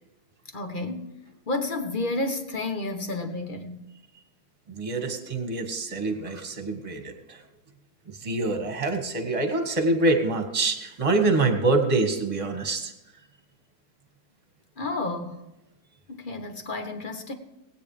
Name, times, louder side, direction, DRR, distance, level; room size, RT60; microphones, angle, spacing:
voice 1, 0.5-1.2 1.5-3.9 14.8-15.4 16.1-17.3, left 2 dB, 35° left, 6 dB, 0.9 m, -31 dB
voice 2, 4.7-7.4 8.1-12.9, right 2 dB, 15° right, 4 dB, 1.6 m, -25 dB
19.5 x 9.3 x 3.3 m, 0.97 s
omnidirectional pair, 2.4 m